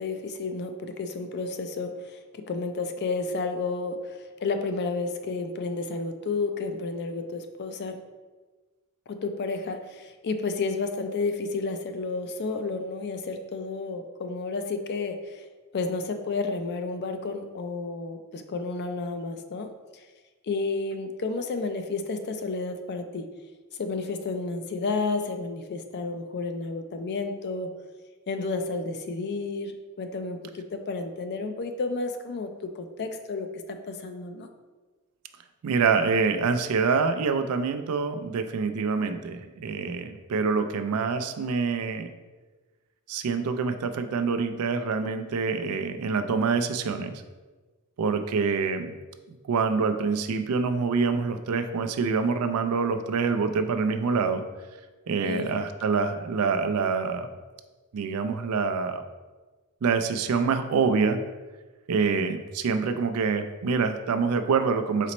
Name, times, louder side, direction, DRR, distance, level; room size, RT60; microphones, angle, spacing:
voice 1, 0.0-8.0 9.1-15.4 15.7-20.0 20.4-23.3 23.8-27.7 28.3-34.5 55.2-55.5, left 3 dB, 50° left, 7 dB, 0.4 m, -31 dB
voice 2, 35.6-42.1 43.1-47.1 48.0-49.0 49.3-54.4 55.1-57.3 57.9-59.0 59.8-61.2 61.9-65.1, right 5 dB, 80° right, 8 dB, 0.4 m, -26 dB
4.1 x 4.1 x 3.0 m, 1.3 s
head